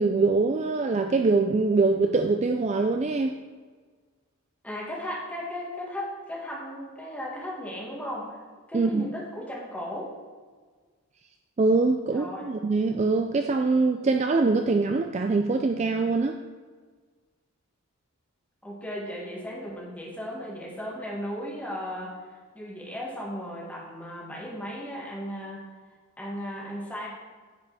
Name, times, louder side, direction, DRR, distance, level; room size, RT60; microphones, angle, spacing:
voice 1, 0.0-3.3 8.7-9.1 11.6-16.4, right 3 dB, 30° right, 5 dB, 0.3 m, -23 dB
voice 2, 4.6-8.4 8.7-10.1 12.1-12.5 18.6-22.1 22.5-25.6 26.2-27.1, equal, 5° left, -4 dB, 1.7 m, -36 dB
10.0 x 5.1 x 4.8 m, 1.5 s
head